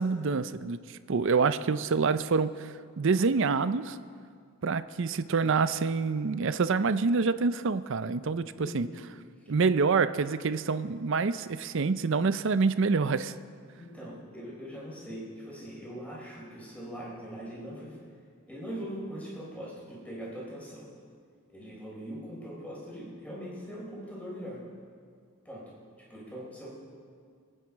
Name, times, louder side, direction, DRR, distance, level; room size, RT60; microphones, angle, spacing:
voice 1, 0.0-4.0 4.6-8.9 9.5-13.3, right 4 dB, 60° right, 13 dB, 0.5 m, -27 dB
voice 2, 8.6-9.0 13.7-18.0 18.5-20.8 21.5-24.6 25.4-25.7 26.1-26.7, equal, 5° left, -6 dB, 4.0 m, -41 dB
26.5 x 9.1 x 4.7 m, 2.1 s
head